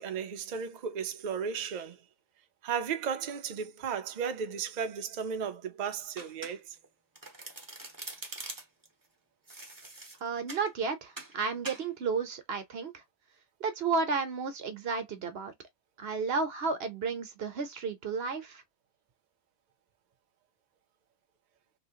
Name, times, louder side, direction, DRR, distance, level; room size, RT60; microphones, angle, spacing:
voice 1, 0.0-2.0 2.6-6.8, right 7 dB, 70° right, 0.4 m, -35 dB
Domestic sounds home sounds, 6.2-6.8 7.1-8.9 9.5-10.7 11.2-11.4 11.6-11.9, right 2 dB, 20° right, 0.8 m, -43 dB
voice 2, 10.2-12.9 13.6-15.5 16.0-18.6, right 4 dB, 55° right, 1.0 m, -32 dB
3.1 x 2.9 x 2.8 m
omnidirectional pair, 1.4 m